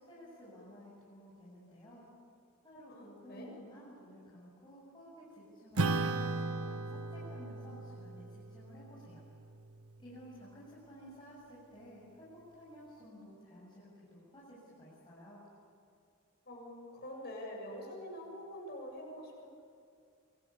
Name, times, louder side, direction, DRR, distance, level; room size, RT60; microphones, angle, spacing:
voice 1, 0.0-2.0 2.6-9.3 10.0-12.3 12.5-15.4, equal, 20° left, -8 dB, 7.6 m, -54 dB
voice 2, 2.9-3.6 16.5-19.5, equal, 45° left, 0 dB, 7.5 m, -45 dB
Acoustic guitar / Strum, 5.8-10.5, right 3 dB, 85° right, 1.3 m, -37 dB
27.5 x 24.0 x 8.7 m, 2.4 s
head